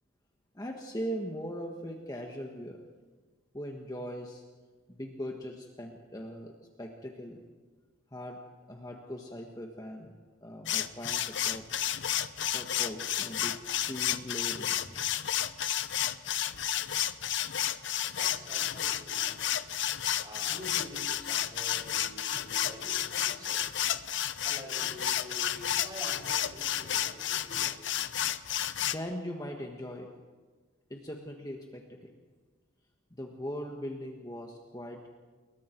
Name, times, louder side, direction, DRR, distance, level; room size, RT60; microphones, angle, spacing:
voice 1, 0.5-2.8 3.5-4.4 4.9-7.5 8.1-8.4 8.7-10.1 10.4-11.7 12.5-13.6 13.9-15.0 28.8-30.1 30.9-32.1 33.2-35.1, equal, 20° left, 1 dB, 1.6 m, -40 dB
sound 1, 10.7-29.0, left 11 dB, 65° left, 0.7 m, -31 dB
voice 2, 18.0-19.4 20.2-23.7 24.4-28.0, left 1 dB, 20° right, -1 dB, 6.8 m, -47 dB
29.5 x 22.0 x 4.6 m, 1.3 s
head